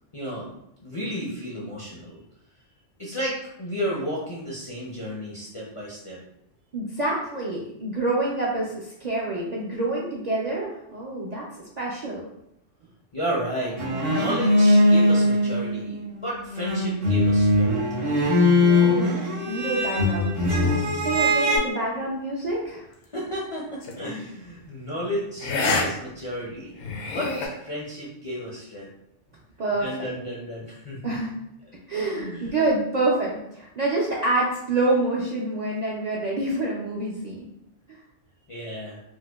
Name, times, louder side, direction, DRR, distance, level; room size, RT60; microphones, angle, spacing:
voice 1, 0.1-0.5 0.8-2.2 3.0-6.2 13.1-17.8 23.1-26.8 27.1-28.9 29.8-31.2 32.1-32.5 38.5-39.0, equal, 40° left, -6 dB, 0.4 m, -32 dB
voice 2, 6.7-11.4 11.8-12.3 18.6-20.5 21.0-22.9 29.6-30.1 31.0-31.3 31.9-37.5, right 2 dB, 55° right, -5 dB, 0.5 m, -27 dB
sound 1, 13.8-16.2 16.5-21.6, left 1 dB, 90° right, 1.3 m, -21 dB
sound 2, 23.8-24.1 25.4-25.9 26.2-26.3 26.8-27.5, left 3 dB, 75° left, 0.9 m, -26 dB
4.5 x 2.1 x 2.2 m, 0.79 s
omnidirectional pair, 1.2 m